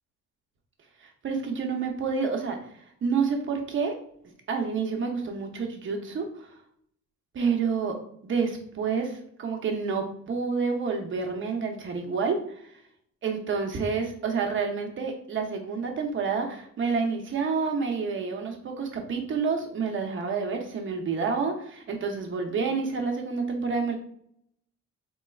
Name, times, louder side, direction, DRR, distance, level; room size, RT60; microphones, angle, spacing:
voice 1, 1.0-4.0 4.5-6.6 7.3-8.0 8.2-12.8 13.2-24.0, right 5 dB, 40° right, 3 dB, 0.7 m, -29 dB
4.2 x 3.0 x 2.3 m, 0.67 s
wide cardioid pair, 165°, 30 cm